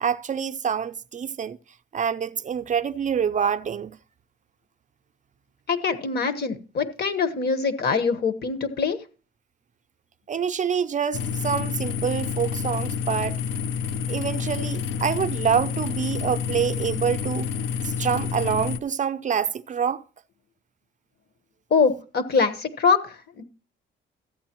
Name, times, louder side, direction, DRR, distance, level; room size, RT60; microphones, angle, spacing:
voice 1, 0.0-1.6 1.9-4.0 10.3-13.4 14.1-17.5 17.8-20.0, right 7 dB, 40° right, 0.5 m, -26 dB
voice 2, 5.7-9.0 21.7-23.4, left 5 dB, 55° left, 1.3 m, -23 dB
sound 1, 11.1-18.8, left 7 dB, 75° left, 0.6 m, -29 dB
14.0 x 8.6 x 3.0 m
cardioid pair, 90°, 20 cm